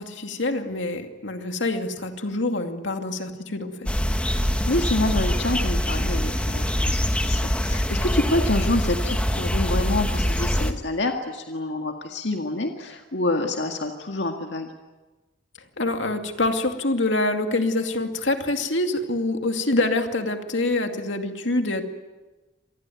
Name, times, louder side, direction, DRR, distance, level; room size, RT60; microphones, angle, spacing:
voice 1, 0.0-3.9 15.8-21.8, left 2 dB, 90° left, 5 dB, 2.4 m, -25 dB
sound 1, 3.9-10.7, equal, 5° left, 1.3 m, -24 dB
voice 2, 4.7-14.7, left 2 dB, 75° left, 3 dB, 1.9 m, -27 dB
26.5 x 20.0 x 9.3 m, 1.2 s
head